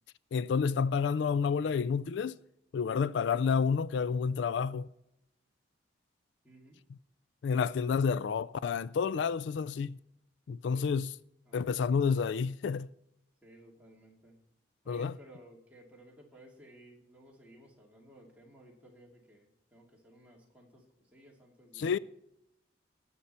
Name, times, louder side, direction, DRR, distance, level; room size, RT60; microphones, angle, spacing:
voice 1, 0.3-2.4 2.7-4.9 7.4-10.0 10.5-11.1 11.5-12.9 14.9-15.1 21.8-22.0, left 6 dB, 75° left, 0.3 m, -29 dB
voice 2, 6.4-6.8 10.7-11.0 11.4-11.7 13.4-14.4 14.8-22.0, right 1 dB, 5° right, 2.5 m, -56 dB
19.5 x 7.1 x 4.3 m
head